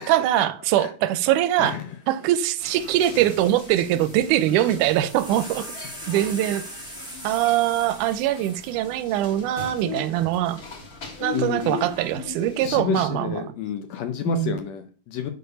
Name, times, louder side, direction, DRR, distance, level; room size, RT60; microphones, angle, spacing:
voice 1, 0.0-1.8 2.1-5.7 6.1-6.7 7.2-10.6 11.2-13.4 14.3-14.6, right 13 dB, 85° right, 2.1 m, -22 dB
sound 1, 2.1-2.2 2.4-9.8 10.7-11.2, right 1 dB, 5° right, 0.3 m, -42 dB
sound 2, 2.6-12.8, left 3 dB, 40° left, 1.4 m, -39 dB
voice 2, 11.3-11.8 12.6-15.3, left 8 dB, 75° left, 1.7 m, -29 dB
6.5 x 4.5 x 5.3 m
omnidirectional pair, 3.5 m